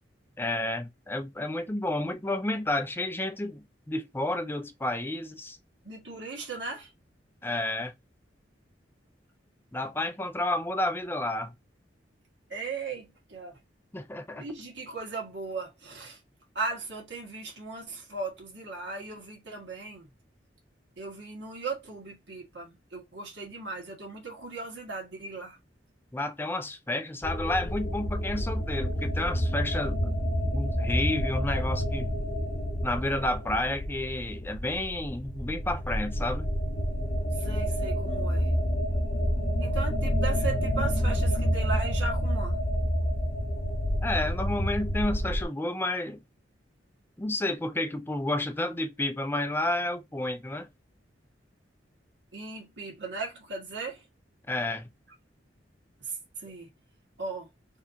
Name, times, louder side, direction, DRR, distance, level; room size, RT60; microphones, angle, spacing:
voice 1, 0.4-5.6 7.4-7.9 9.7-11.5 13.9-14.5 26.1-32.1 32.8-36.5 44.0-46.2 47.2-50.7 54.5-54.9, left 1 dB, 10° left, 0.5 m, -31 dB
voice 2, 5.8-6.9 12.5-13.6 14.3-16.2 16.5-20.1 21.0-25.6 37.3-38.5 39.6-42.6 52.3-54.1 56.0-56.7 57.2-57.5, right 3 dB, 70° right, 2.1 m, -37 dB
sound 1, 27.2-45.4, equal, 45° left, 1.0 m, -29 dB
4.3 x 3.1 x 2.8 m
head